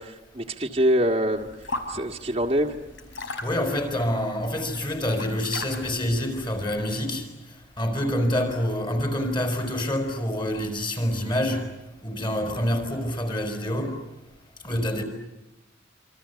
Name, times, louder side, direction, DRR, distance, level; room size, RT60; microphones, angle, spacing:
voice 1, 0.0-1.5 1.9-2.7, equal, 30° right, 1.8 m, -24 dB
sound 1, 1.3-7.0, left 2 dB, 65° left, 5.1 m, -39 dB
voice 2, 3.4-7.3 7.8-14.1 14.6-15.0, left 1 dB, 25° left, 4.9 m, -27 dB
28.0 x 25.5 x 8.3 m
head